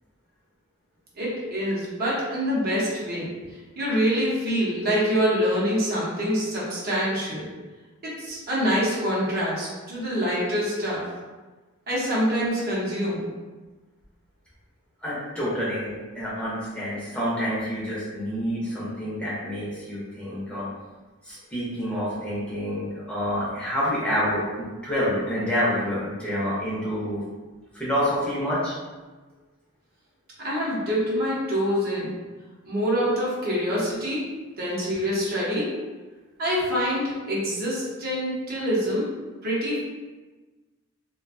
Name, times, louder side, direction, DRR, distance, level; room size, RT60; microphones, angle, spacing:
voice 1, 1.2-3.3 3.8-7.5 8.0-11.0 11.9-13.3 30.4-32.2 32.6-34.3 34.6-35.8 36.4-39.1 39.4-39.8, equal, 45° right, -6 dB, 0.7 m, -25 dB
voice 2, 15.0-20.6 21.2-24.4 24.8-27.2 27.7-28.8, equal, 5° left, -9 dB, 0.7 m, -28 dB
2.5 x 2.2 x 2.5 m, 1.3 s
head